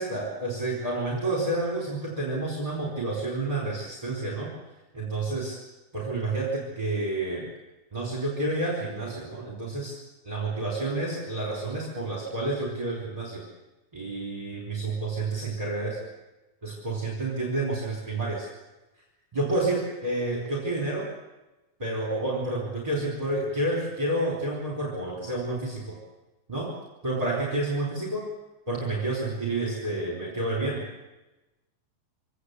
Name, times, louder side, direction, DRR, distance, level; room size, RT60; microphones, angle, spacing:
voice 1, 0.0-4.5 4.9-5.6 5.9-7.5 7.9-10.0 10.2-13.4 13.9-16.0 16.6-18.5 19.3-21.1 21.8-26.0 26.5-26.7 27.0-28.3 28.7-30.8, right 2 dB, 10° right, -2 dB, 3.8 m, -29 dB
24.5 x 18.0 x 8.2 m, 1.1 s
omnidirectional pair, 4.0 m